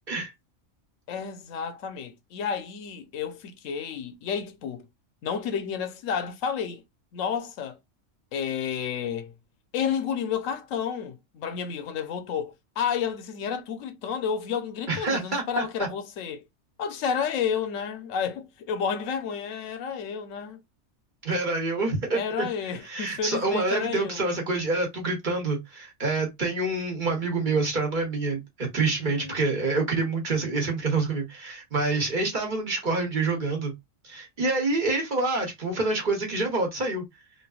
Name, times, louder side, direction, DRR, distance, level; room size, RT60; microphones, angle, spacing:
voice 1, 1.1-4.9 5.2-6.8 7.1-7.8 8.3-9.3 9.7-16.4 16.8-20.6 22.1-24.3 29.0-29.3, left 7 dB, 85° left, 1.0 m, -31 dB
voice 2, 14.9-15.9 21.2-22.5 22.8-33.7 34.0-37.0, right 3 dB, 45° right, 0.9 m, -27 dB
3.2 x 2.6 x 2.3 m
omnidirectional pair, 1.3 m